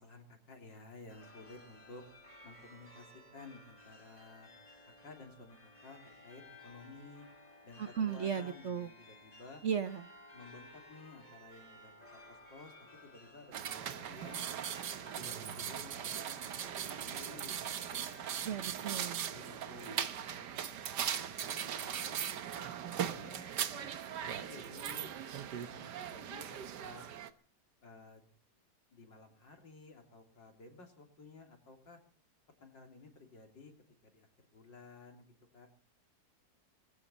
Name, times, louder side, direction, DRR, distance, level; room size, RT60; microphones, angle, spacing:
voice 1, 0.0-2.0 2.4-4.5 5.0-7.3 7.6-9.6 10.3-14.4 15.2-18.0 18.4-18.6 19.2-22.3 22.8-24.0 24.2-27.1 27.8-28.2 28.9-32.0 32.6-33.7 34.0-35.7, left 3 dB, 80° left, 3 dB, 3.9 m, -54 dB
sound 1, 1.1-18.4, left 1 dB, 20° left, 3.3 m, -57 dB
voice 2, 7.8-8.9 9.6-10.0 18.4-19.3, right 7 dB, 50° right, 10 dB, 1.1 m, -36 dB
sound 2, 13.5-27.3, right 9 dB, 70° right, 1.6 m, -39 dB
20.5 x 16.0 x 4.2 m, 0.43 s
omnidirectional pair, 1.9 m